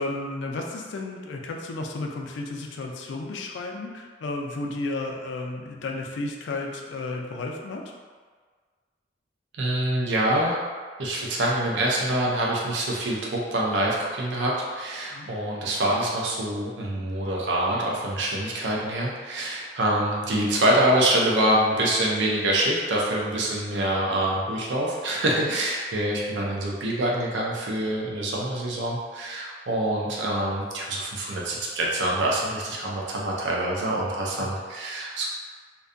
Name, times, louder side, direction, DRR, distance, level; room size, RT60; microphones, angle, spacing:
voice 1, 0.0-7.8 15.1-15.3 25.4-25.5 34.4-34.5, left 2 dB, 85° left, 2 dB, 0.4 m, -33 dB
voice 2, 9.6-10.6 11.0-35.3, right 1 dB, 75° right, -3 dB, 0.5 m, -25 dB
2.6 x 2.2 x 2.5 m, 1.5 s
head